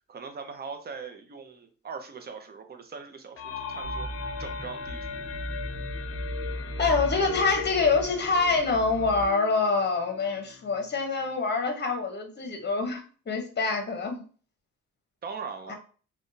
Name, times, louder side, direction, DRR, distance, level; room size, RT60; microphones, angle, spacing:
voice 1, 0.1-3.4 3.7-4.1 4.4-5.3 15.2-15.7, right 5 dB, 30° right, 6 dB, 0.6 m, -40 dB
sound 1, 3.4-11.0, left 6 dB, 50° left, 0.4 m, -39 dB
sound 2, 3.8-9.3, equal, 5° left, 0.9 m, -37 dB
voice 2, 6.8-14.2 15.7-15.8, left 4 dB, 35° left, 4 dB, 0.9 m, -26 dB
3.4 x 2.3 x 2.7 m, 0.39 s
cardioid pair, 90°, 30 cm